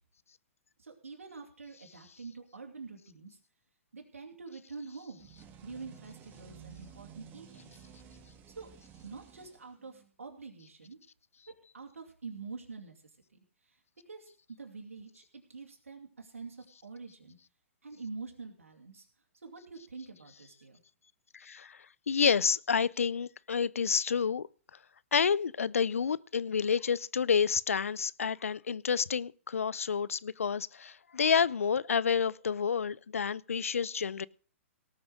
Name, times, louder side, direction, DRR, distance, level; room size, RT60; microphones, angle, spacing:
voice 1, 0.8-3.4 3.9-5.3 5.6-7.8 8.6-8.7 9.0-11.0 11.7-13.0 14.1-14.3 14.6-17.4 17.8-19.1 19.4-20.8, right 4 dB, 90° right, 2.8 m, -46 dB
sound 1, 5.2-10.1, right 7 dB, 25° right, 1.7 m, -53 dB
voice 2, 21.3-21.8 22.1-24.5 25.1-34.3, left 6 dB, 85° left, 0.5 m, -29 dB
18.0 x 6.1 x 6.4 m
hypercardioid pair, 130°, 7 cm